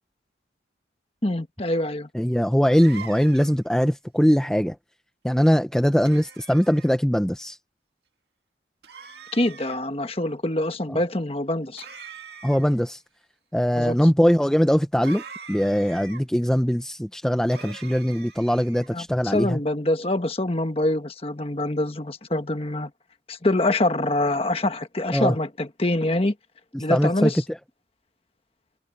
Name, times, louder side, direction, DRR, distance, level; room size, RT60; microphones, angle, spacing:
voice 1, 1.2-2.1 9.3-11.9 13.7-13.9 18.9-22.9 23.3-26.3 26.8-27.4, left 1 dB, 30° left, 1.4 m, -25 dB
voice 2, 2.1-4.8 5.2-7.6 10.9-11.0 12.4-13.0 13.5-15.2 15.5-19.6 25.1-25.4 26.7-27.6, equal, 5° left, 0.7 m, -21 dB
sound 1, 2.7-3.7 6.0-6.9 8.8-9.8 11.8-12.8 15.0-16.2 17.5-18.9, right 5 dB, 60° right, 2.1 m, -43 dB
head